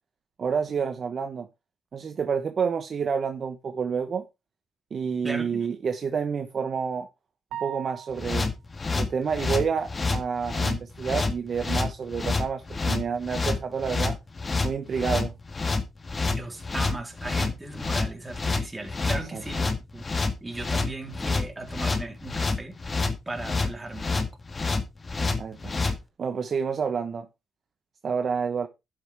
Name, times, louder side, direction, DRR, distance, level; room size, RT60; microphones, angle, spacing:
voice 1, 0.4-1.5 1.9-4.2 4.9-7.1 7.6-8.5 8.9-14.2 14.6-15.3 19.3-19.4 25.4-25.7 26.2-27.3 28.0-28.7, right 6 dB, 50° right, 1.1 m, -29 dB
voice 2, 5.2-5.6 16.3-20.0 20.4-22.7 23.3-24.3, right 2 dB, 15° right, 3.7 m, -37 dB
sound 1, 7.5-8.6, right 10 dB, 90° right, 0.9 m, -38 dB
sound 2, 8.2-26.0, left 3 dB, 30° left, 2.0 m, -28 dB
11.5 x 7.9 x 3.6 m
cardioid pair, 90°, 0 cm